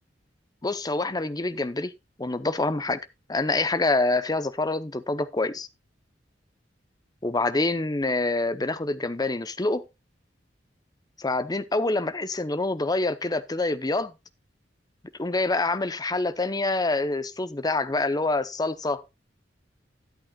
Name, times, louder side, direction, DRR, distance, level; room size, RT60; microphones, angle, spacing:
voice 1, 0.6-1.9 2.2-3.0 3.3-5.7 7.2-9.8 11.2-14.1 15.2-19.0, left 2 dB, 20° left, 0.7 m, -26 dB
13.0 x 10.5 x 2.3 m
head